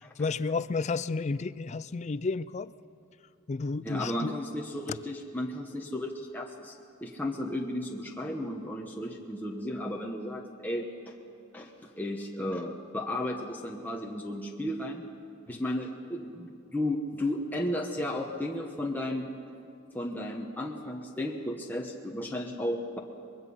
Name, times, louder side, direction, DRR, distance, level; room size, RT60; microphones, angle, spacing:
voice 1, 0.2-2.7 3.5-4.3 4.9-5.0, left 4 dB, 35° left, 16 dB, 0.4 m, -31 dB
voice 2, 3.8-6.8 7.0-11.2 11.5-15.0 15.5-19.3 19.9-23.0, left 1 dB, 10° left, -1 dB, 1.1 m, -34 dB
24.5 x 21.0 x 5.6 m, 2.6 s
head